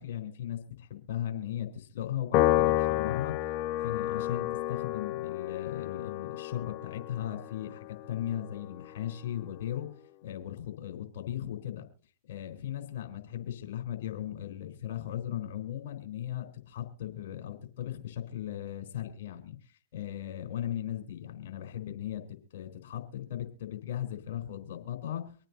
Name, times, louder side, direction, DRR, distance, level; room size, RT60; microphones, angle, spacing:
voice 1, 0.0-3.3 3.8-9.9 10.2-11.8 12.3-22.2 22.5-25.4, left 11 dB, 55° left, 4 dB, 4.1 m, -37 dB
Piano, 2.3-8.9, left 15 dB, 40° left, 0.5 m, -30 dB
25.5 x 9.0 x 2.8 m, 0.38 s
hypercardioid pair, 110°, 0 cm